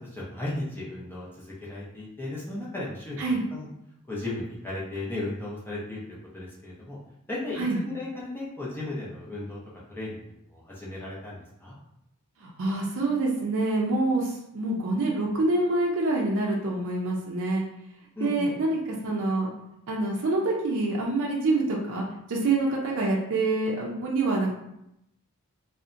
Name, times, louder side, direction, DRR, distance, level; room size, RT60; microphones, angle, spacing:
voice 1, 0.0-3.7 4.1-7.0 7.3-9.6 9.9-11.7 18.2-18.5, left 2 dB, 10° left, -6 dB, 0.5 m, -35 dB
voice 2, 12.4-17.6 18.2-19.5 19.9-24.5, right 2 dB, 60° right, -2 dB, 0.5 m, -26 dB
2.7 x 2.0 x 2.4 m, 0.80 s
head